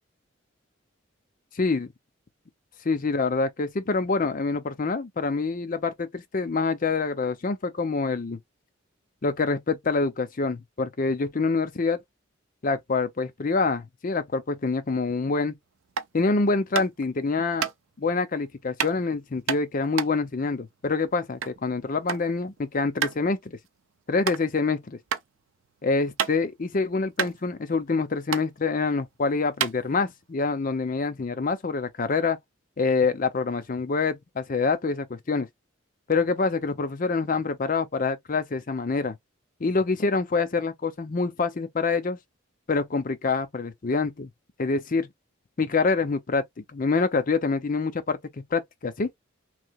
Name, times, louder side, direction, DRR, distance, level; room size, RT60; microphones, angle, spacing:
voice 1, 1.6-1.9 2.9-8.4 9.2-12.0 12.6-15.6 16.1-17.6 18.0-23.6 24.1-25.0 25.8-32.4 32.8-35.5 36.1-39.2 39.6-42.2 42.7-44.3 44.6-45.1 45.6-49.1, left 4 dB, 40° left, 0.5 m, -26 dB
sound 1, 15.9-16.2 16.7-17.1 17.6-17.7 18.8-19.0 19.5-21.6 21.9-22.3 22.6-22.7 23.0-23.2 23.7-23.8 24.2-24.4 25.1-25.2 25.7-26.6 26.9-27.0 27.2-28.0 28.3-28.5 29.1-29.2 29.5-30.3, right 7 dB, 75° right, 0.5 m, -29 dB
3.2 x 2.8 x 2.3 m
head